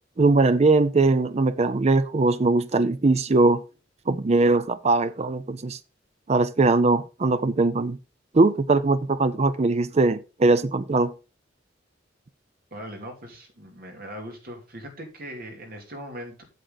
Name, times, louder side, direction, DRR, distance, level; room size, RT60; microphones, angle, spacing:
voice 1, 0.2-3.6 4.1-5.8 6.3-8.0 8.3-11.1, right 3 dB, 35° right, 0.5 m, -21 dB
voice 2, 12.7-16.4, equal, 55° right, 2.8 m, -40 dB
8.0 x 7.7 x 4.0 m
head